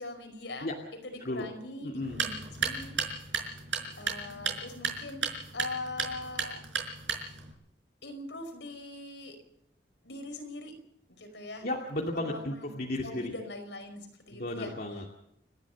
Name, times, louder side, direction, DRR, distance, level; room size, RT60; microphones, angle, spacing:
voice 1, 0.0-3.0 4.0-5.3 5.5-6.6 8.0-9.4 10.0-10.7 11.1-11.7 12.1-12.7 13.0-14.7, left 2 dB, 75° left, 5 dB, 5.3 m, -41 dB
voice 2, 1.8-2.2 11.6-13.3 14.3-15.1, left 1 dB, 50° left, 0 dB, 2.5 m, -34 dB
sound 1, 2.0-7.5, right 5 dB, 85° right, 5.4 m, -34 dB
29.5 x 12.0 x 7.5 m, 0.75 s
head